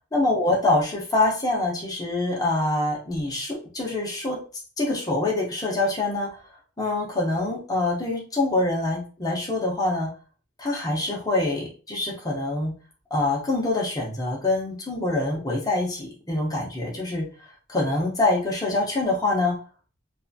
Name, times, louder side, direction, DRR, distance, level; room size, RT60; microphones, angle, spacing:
voice 1, 0.1-4.4 4.8-6.3 6.8-10.1 10.6-12.7 13.1-17.3 17.7-19.6, left 2 dB, 15° left, -3 dB, 0.8 m, -25 dB
2.7 x 2.4 x 2.6 m, 0.37 s
head